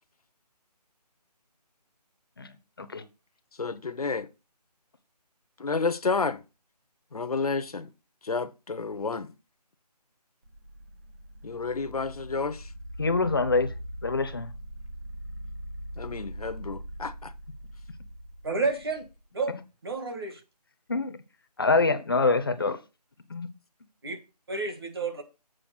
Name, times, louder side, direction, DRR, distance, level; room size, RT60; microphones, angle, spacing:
voice 1, 2.4-3.0 13.0-13.7 14.0-14.5 20.9-21.2 21.6-22.8 23.3-23.5, left 3 dB, 35° left, 0.8 m, -25 dB
voice 2, 3.6-4.3 5.6-6.4 7.1-7.9 8.2-9.3 11.4-12.7 16.0-17.3, left 4 dB, 60° left, 0.9 m, -30 dB
sound 1, 10.4-19.2, equal, 20° right, 0.8 m, -41 dB
voice 3, 18.4-19.0 19.3-19.6 19.8-20.4 24.0-24.2 24.5-25.2, right 3 dB, 35° right, 1.7 m, -30 dB
7.7 x 4.9 x 6.5 m
figure-of-eight pair, 175°, 21 cm